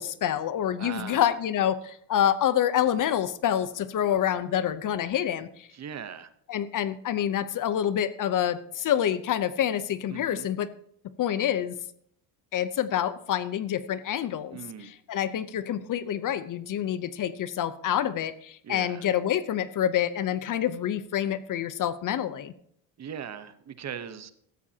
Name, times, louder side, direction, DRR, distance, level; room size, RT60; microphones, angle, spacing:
voice 1, 0.0-5.7 6.5-10.7 11.2-11.7 12.5-14.6 15.1-22.5, left 10 dB, 40° left, 14 dB, 0.7 m, -27 dB
voice 2, 0.8-1.4 5.7-6.3 10.1-10.5 14.5-15.0 18.6-19.1 23.0-24.3, right 8 dB, 35° right, 12 dB, 1.0 m, -39 dB
16.0 x 13.5 x 2.8 m, 0.67 s
cardioid pair, 125°, 47 cm